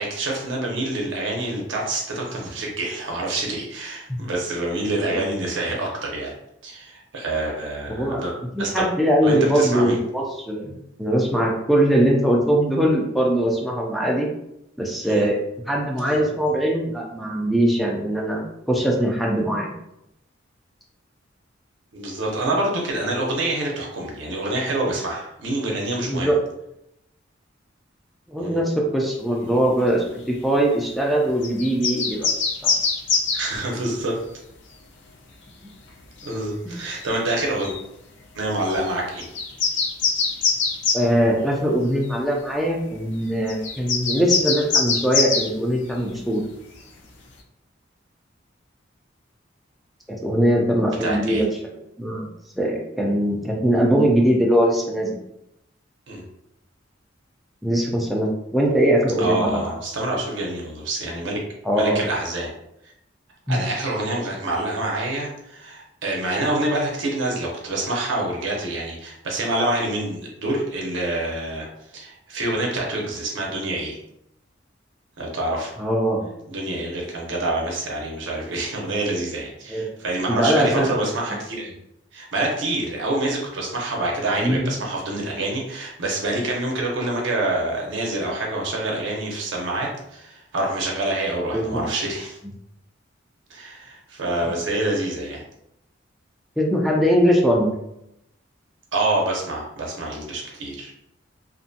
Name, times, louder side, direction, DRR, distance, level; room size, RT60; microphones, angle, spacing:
voice 1, 0.0-6.3 6.6-8.7 9.2-10.0 15.0-15.2 16.0-16.2 21.9-26.3 28.4-28.6 33.3-34.2 36.2-37.7 38.4-39.3 51.0-51.4 56.1-56.3 59.2-61.4 61.7-62.5 62.8-62.9 63.5-71.7 71.9-74.0 75.2-75.8 76.5-81.7 82.1-92.4 93.5-95.4 98.9-100.9, right 2 dB, 70° right, -1 dB, 0.6 m, -26 dB
voice 2, 7.9-8.2 8.6-14.3 14.8-15.4 15.7-19.7 26.1-26.4 28.3-32.3 32.6-32.7 35.6-35.7 40.9-46.4 50.1-51.5 52.0-52.3 52.6-55.2 57.6-59.7 61.6-62.0 63.5-63.6 75.8-76.3 79.7-79.9 80.3-81.0 84.4-84.7 91.5-91.8 96.6-97.7, right 1 dB, ahead, -2 dB, 0.3 m, -21 dB
sound 1, 31.4-33.4 36.2-36.3 37.0-37.1 37.6-37.8 38.7-38.9 39.2-41.0 42.1-42.2 43.5-45.5, left 4 dB, 65° left, 0.4 m, -23 dB
2.5 x 2.1 x 2.6 m, 0.81 s
head